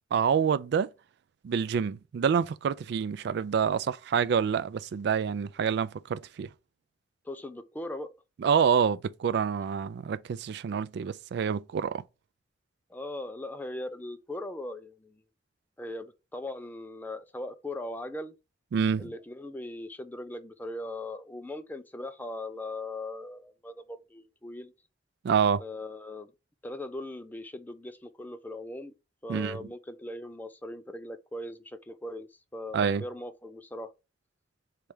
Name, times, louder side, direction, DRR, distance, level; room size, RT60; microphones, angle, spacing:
voice 1, 0.1-0.9 1.4-6.5 8.4-12.0 18.7-19.1 25.2-25.6 29.3-29.6 32.7-33.0, right 7 dB, 65° right, 0.3 m, -27 dB
voice 2, 7.2-8.2 12.9-15.2 15.8-18.3 19.0-24.7 25.6-26.3 26.6-28.9 29.2-33.9, left 1 dB, 10° left, 0.4 m, -39 dB
3.3 x 3.2 x 4.8 m
head